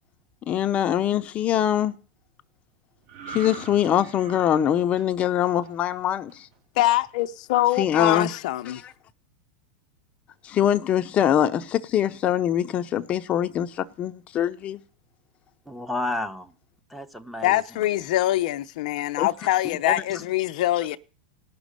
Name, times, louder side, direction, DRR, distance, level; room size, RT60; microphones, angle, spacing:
voice 1, 0.5-1.9 3.3-6.5 7.8-8.3 8.7-8.9 10.4-14.8 19.2-19.3, left 10 dB, 30° left, 0.7 m, -23 dB
sound 1, 3.1-6.6 7.0-7.2, right 5 dB, 55° right, 3.6 m, -43 dB
voice 2, 6.8-8.8 17.4-21.0, left 15 dB, 65° left, 0.7 m, -24 dB
voice 3, 15.7-16.5 16.9-17.8 19.4-19.5 19.8-20.2, left 1 dB, ahead, 0.9 m, -32 dB
18.5 x 6.2 x 6.7 m
supercardioid pair, 135°, 4 cm